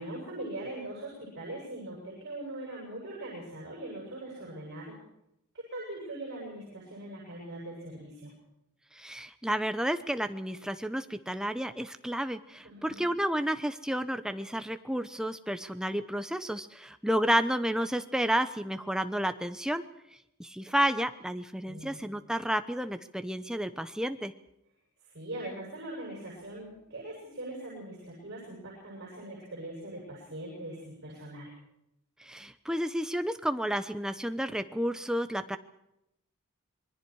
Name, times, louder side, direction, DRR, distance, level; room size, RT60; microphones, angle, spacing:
voice 1, 0.0-5.0 5.7-8.3 12.6-13.0 21.6-22.1 25.1-31.5, right 1 dB, 50° right, -4 dB, 7.7 m, -41 dB
voice 2, 8.9-19.8 20.4-24.3 32.2-35.6, equal, 5° right, 9 dB, 0.8 m, -31 dB
27.0 x 21.5 x 4.8 m, 0.82 s
head